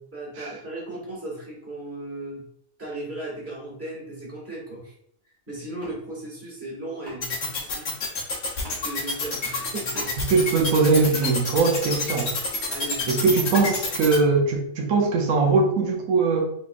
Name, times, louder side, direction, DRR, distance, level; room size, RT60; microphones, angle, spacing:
voice 1, 0.1-2.4 2.8-4.9 5.5-7.9 8.7-10.1 12.7-13.3, right 2 dB, 10° right, -6 dB, 1.2 m, -36 dB
sound 1, 5.8-6.0 7.0-7.2 8.6-8.8 9.9-10.1 11.2-11.4, right 3 dB, 35° right, 1.0 m, -38 dB
sound 2, 7.2-14.2, left 4 dB, 55° left, 1.0 m, -28 dB
voice 2, 10.3-12.3 13.1-16.4, right 4 dB, 75° right, 0 dB, 1.0 m, -21 dB
3.5 x 3.1 x 2.4 m, 0.71 s
omnidirectional pair, 1.4 m